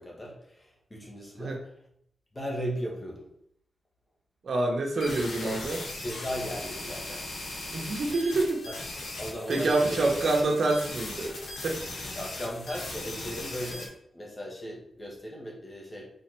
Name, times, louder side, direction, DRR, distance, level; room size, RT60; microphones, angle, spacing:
voice 1, 0.0-1.6 2.3-3.3 5.4-7.3 8.7-8.8 9.2-10.0 12.0-16.1, equal, 25° left, -2 dB, 2.4 m, -37 dB
voice 2, 4.4-5.8 7.7-8.6 9.5-11.4 11.6-12.2, right 2 dB, 60° right, 0 dB, 1.5 m, -27 dB
sound 1, 5.0-13.8, left 2 dB, 80° left, 2.4 m, -38 dB
6.9 x 4.4 x 4.6 m, 0.70 s
cardioid pair, 85°, 0 cm